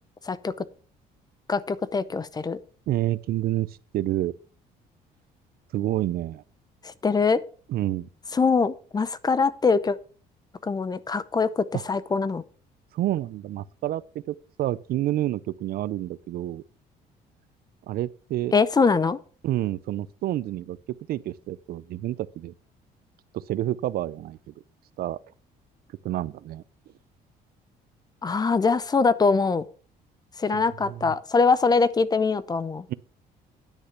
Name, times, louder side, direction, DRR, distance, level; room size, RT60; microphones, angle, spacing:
voice 1, 1.5-2.6 6.8-7.4 8.3-10.0 10.6-12.4 18.5-19.2 28.2-29.6 30.4-32.8, left 4 dB, 25° left, 0.7 m, -23 dB
voice 2, 2.9-4.3 5.7-6.4 7.7-8.1 12.9-16.6 17.9-18.5 19.4-20.8 21.1-22.5 23.3-24.5 25.0-25.2 26.0-26.6 30.8-31.1 32.9-33.0, right 14 dB, 65° right, 0.6 m, -29 dB
10.5 x 6.5 x 5.8 m
cardioid pair, 110°, 17 cm